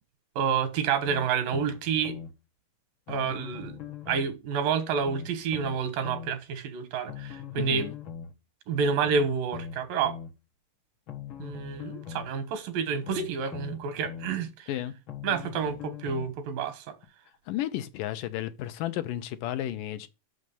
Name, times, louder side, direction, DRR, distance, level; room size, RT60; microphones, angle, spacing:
voice 1, 0.4-2.2 3.1-3.8 4.1-7.9 8.7-10.2 11.4-14.7 15.2-16.9, right 6 dB, 90° right, 3.0 m, -29 dB
sound 1, 1.1-2.3 3.1-4.3 5.0-6.3 7.1-8.3 9.0-10.3 11.1-12.3 13.0-14.3 15.1-16.3 17.0-17.1, left 7 dB, 45° left, 1.8 m, -40 dB
voice 2, 7.6-8.0 14.7-14.9 17.5-20.1, left 13 dB, 80° left, 2.4 m, -33 dB
6.5 x 6.2 x 7.0 m
omnidirectional pair, 3.8 m